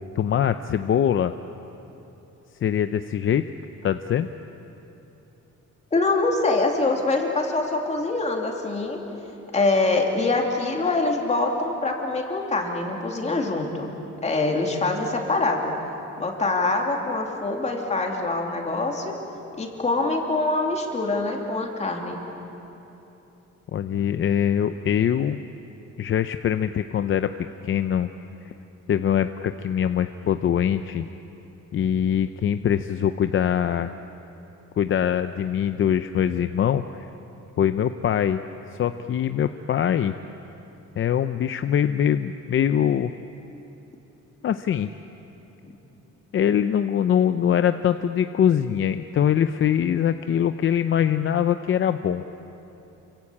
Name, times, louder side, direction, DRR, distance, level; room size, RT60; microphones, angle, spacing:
voice 1, 0.1-1.3 2.6-3.4 3.8-4.3 23.7-25.4 26.0-27.3 27.6-28.1 28.4-28.5 28.9-31.1 31.7-33.9 34.8-36.8 37.6-38.4 38.8-40.1 41.0-43.1 44.4-44.9 46.3-52.2, left 9 dB, 45° left, 9 dB, 0.6 m, -23 dB
voice 2, 5.9-9.0 9.5-13.9 14.2-15.7 16.2-19.2 19.6-22.2 45.6-45.7, left 3 dB, 25° left, 1 dB, 2.8 m, -24 dB
28.0 x 24.5 x 8.6 m, 3.0 s
cardioid pair, 175°, 29 cm